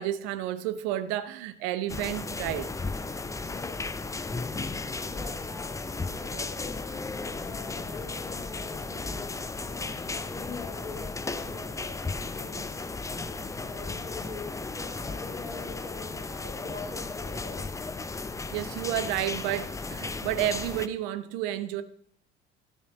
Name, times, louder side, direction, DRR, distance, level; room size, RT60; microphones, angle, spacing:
voice 1, 0.0-2.7 18.5-21.8, right 12 dB, 60° right, 0.9 m, -31 dB
sound 1, 1.9-20.9, left 3 dB, 10° left, 0.5 m, -35 dB
voice 2, 3.4-4.2 5.0-9.3 9.6-12.6 13.2-17.9, left 3 dB, 80° left, 2.8 m, -43 dB
12.5 x 6.1 x 5.3 m
figure-of-eight pair, 60°, 32 cm